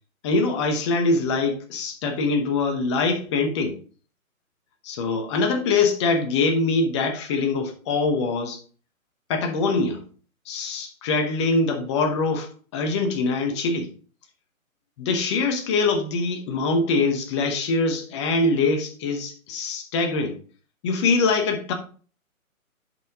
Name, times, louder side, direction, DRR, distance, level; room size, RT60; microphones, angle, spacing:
voice 1, 0.2-3.8 4.8-8.6 9.3-10.0 10.5-13.9 15.0-20.4 20.8-21.7, left 3 dB, 20° left, 0.9 m, -23 dB
7.6 x 5.7 x 3.6 m
figure-of-eight pair, 135°, 42 cm